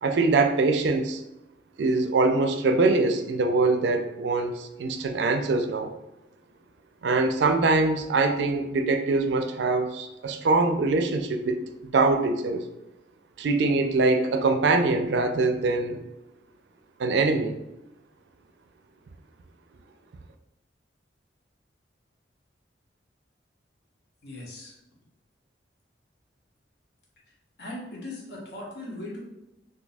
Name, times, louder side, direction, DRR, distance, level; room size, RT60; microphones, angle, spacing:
voice 1, 0.0-1.2 1.8-5.9 7.0-12.7 13.4-16.0 17.0-17.6, right 3 dB, 75° right, 6 dB, 0.4 m, -23 dB
voice 2, 24.2-24.8 27.6-29.2, left 1 dB, 65° left, -4 dB, 1.0 m, -38 dB
2.6 x 2.3 x 4.0 m, 0.93 s
head